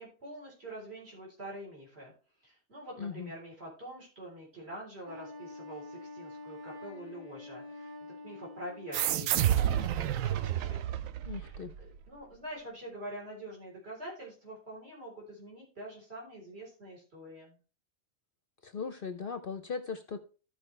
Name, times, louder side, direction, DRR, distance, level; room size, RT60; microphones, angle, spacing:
voice 1, 0.0-2.1 2.4-7.9 8.2-10.9 11.2-17.6, right 1 dB, 50° right, -3 dB, 3.9 m, -45 dB
voice 2, 3.0-3.3 11.3-11.7 18.6-20.2, left 5 dB, 55° left, 8 dB, 0.7 m, -38 dB
Wind instrument woodwind instrument, 5.0-9.4, left 2 dB, 15° right, 1.5 m, -47 dB
sound 1, 8.9-12.0, right 11 dB, 80° right, 1.0 m, -30 dB
14.5 x 5.0 x 3.2 m, 0.37 s
omnidirectional pair, 1.4 m